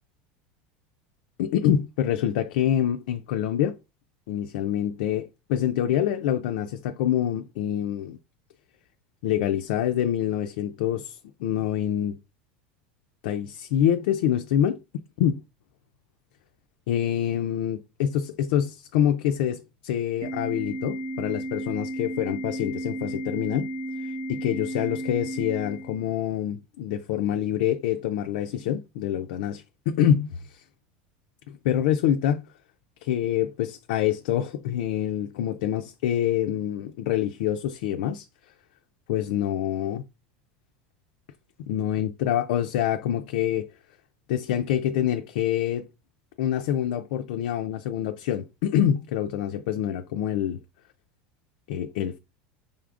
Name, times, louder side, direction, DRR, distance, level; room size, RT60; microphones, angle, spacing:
voice 1, 1.4-3.8 4.3-8.2 9.2-12.1 13.2-14.8 15.2-15.4 16.9-23.7 24.0-30.6 31.5-32.4 33.0-38.3 39.1-40.0 41.7-43.7 44.3-45.9 46.4-50.6 51.7-52.2, left 10 dB, 75° left, 0.4 m, -26 dB
Organ, 20.2-26.2, right 1 dB, 65° right, 1.2 m, -33 dB
5.3 x 3.5 x 2.4 m
supercardioid pair, 140°, 5 cm